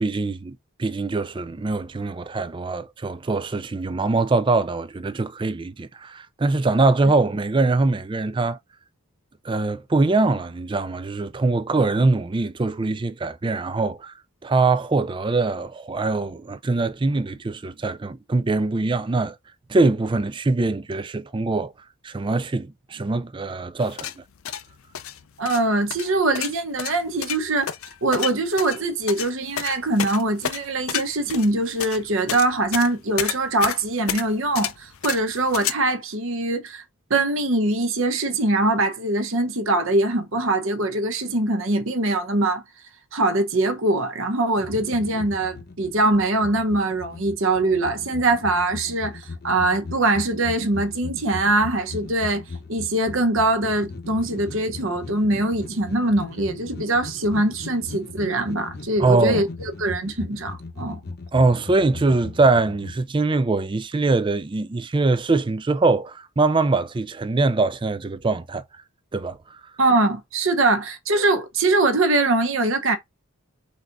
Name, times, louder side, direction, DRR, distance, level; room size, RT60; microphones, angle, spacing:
voice 1, 0.0-8.6 9.4-14.1 14.4-19.3 19.7-21.7 22.0-24.1 59.0-59.4 61.3-68.6 69.1-69.4, right 3 dB, 20° right, 0.3 m, -22 dB
sound 1, 23.8-35.7, left 10 dB, 75° left, 0.6 m, -31 dB
voice 2, 25.4-27.7 28.0-36.8 37.1-42.6 43.1-52.4 52.7-61.0 69.8-73.0, right 2 dB, 60° right, 1.0 m, -22 dB
sound 2, 44.6-63.0, left 3 dB, 45° left, 0.8 m, -38 dB
4.6 x 4.1 x 2.6 m
head